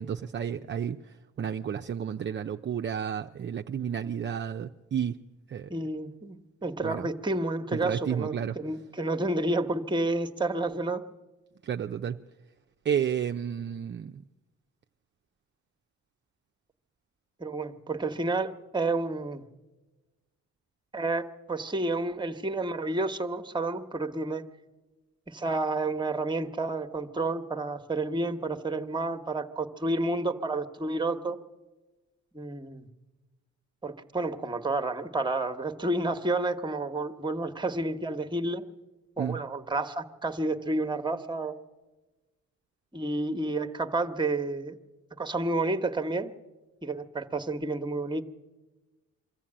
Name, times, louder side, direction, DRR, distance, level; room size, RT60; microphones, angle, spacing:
voice 1, 0.0-5.2 5.5-5.7 6.8-7.1 7.7-8.6 11.6-12.2 12.8-14.2 39.2-39.4, right 8 dB, 40° right, 0.6 m, -31 dB
voice 2, 5.7-11.0 17.4-19.5 20.9-24.4 25.3-31.4 32.3-32.9 33.8-38.7 39.2-41.5 42.9-44.8 45.2-46.3 46.8-48.2, right 2 dB, 15° right, 1.2 m, -30 dB
23.5 x 14.0 x 8.7 m
cardioid pair, 90°, 30 cm